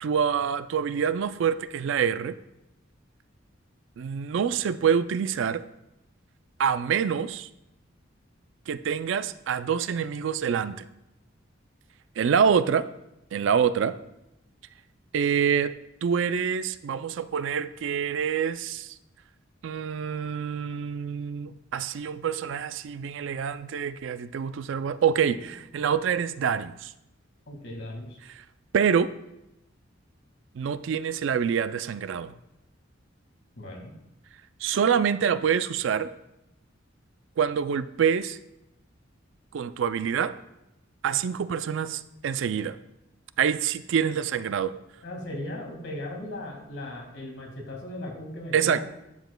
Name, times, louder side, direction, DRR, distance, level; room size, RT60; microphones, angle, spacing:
voice 1, 0.0-2.3 4.0-5.6 6.6-7.5 8.7-10.8 12.2-12.9 13.3-14.0 15.1-15.7 16.0-19.0 19.6-26.9 28.3-28.4 28.7-29.1 30.5-32.4 34.6-36.1 37.4-38.4 39.5-40.4 41.0-42.8 43.4-44.7 48.5-48.8, right 7 dB, 70° right, 13 dB, 0.3 m, -26 dB
voice 2, 27.5-28.2 33.6-33.9 45.0-48.8, left 1 dB, 65° left, 1 dB, 1.9 m, -37 dB
11.5 x 7.1 x 2.2 m, 0.88 s
head